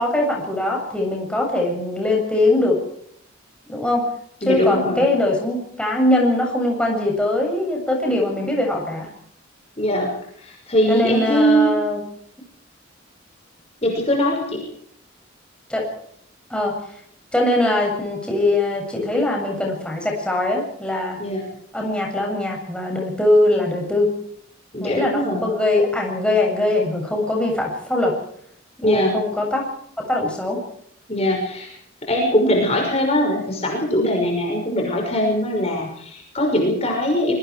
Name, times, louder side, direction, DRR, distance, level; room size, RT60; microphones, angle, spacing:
voice 1, 0.0-2.8 3.7-4.0 4.4-9.1 10.9-12.0 15.7-15.9 16.5-16.7 17.3-21.2 21.7-24.1 24.8-28.1 28.8-29.6 30.1-30.6, left 1 dB, 5° left, -1 dB, 7.7 m, -21 dB
voice 2, 4.4-5.0 9.8-10.1 10.4-11.8 13.8-14.6 21.2-21.5 24.7-25.4 28.8-29.2 31.1-31.7 32.0-37.3, equal, 30° left, 1 dB, 5.8 m, -21 dB
25.5 x 23.0 x 4.8 m, 0.68 s
head